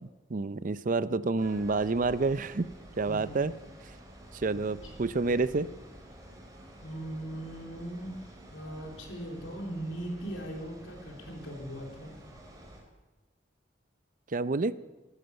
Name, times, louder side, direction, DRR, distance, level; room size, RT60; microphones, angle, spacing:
voice 1, 0.3-2.7 3.0-3.5 4.3-5.7 14.3-14.8, right 3 dB, 45° right, 15 dB, 0.5 m, -28 dB
sound 1, 1.4-12.8, right 1 dB, 20° right, 3.5 m, -50 dB
voice 2, 3.1-3.4 4.5-4.9 5.2-5.5 6.8-8.2 8.5-12.1, right 1 dB, 90° left, 1 dB, 3.6 m, -40 dB
13.0 x 13.0 x 8.1 m, 1.2 s
head